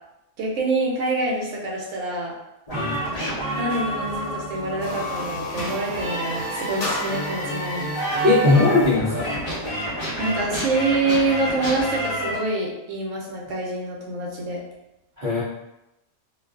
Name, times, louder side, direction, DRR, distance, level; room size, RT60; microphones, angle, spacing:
voice 1, 0.4-2.3 3.6-7.9 10.2-14.6, right 2 dB, 75° right, -2 dB, 0.9 m, -26 dB
sound 1, 2.7-12.4, right 1 dB, 35° left, 0.8 m, -29 dB
voice 2, 2.7-3.0 8.2-9.4 15.2-15.4, left 3 dB, 50° right, -10 dB, 0.6 m, -19 dB
sound 2, 4.6-9.1, left 2 dB, 65° left, 1.3 m, -32 dB
2.6 x 2.2 x 2.3 m, 0.92 s
omnidirectional pair, 1.4 m